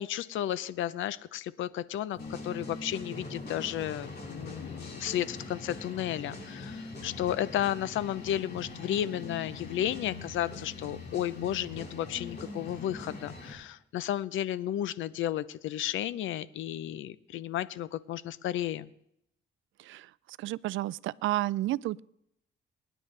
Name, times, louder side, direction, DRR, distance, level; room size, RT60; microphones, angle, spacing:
voice 1, 0.0-18.9, left 11 dB, 80° left, 17 dB, 0.7 m, -33 dB
sound 1, 2.2-13.5, left 2 dB, 60° left, 7.3 m, -42 dB
voice 2, 20.4-22.0, right 16 dB, 80° right, 21 dB, 0.4 m, -31 dB
27.0 x 10.0 x 3.3 m, 0.79 s
cardioid pair, 90°, 20 cm